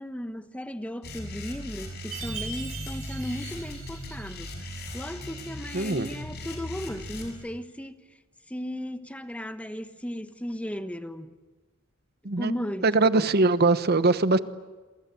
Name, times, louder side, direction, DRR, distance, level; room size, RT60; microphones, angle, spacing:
voice 1, 0.0-8.0 8.5-11.4 12.4-12.9 13.1-13.2, equal, 5° left, 1.1 m, -36 dB
sound 1, 1.0-7.3, left 1 dB, 55° left, 6.6 m, -38 dB
Chime, 2.1-4.6, right 6 dB, 90° right, 7.9 m, -41 dB
voice 2, 5.7-6.1 12.2-12.5 12.8-14.4, right 3 dB, 50° right, 1.1 m, -22 dB
28.0 x 24.5 x 8.3 m
head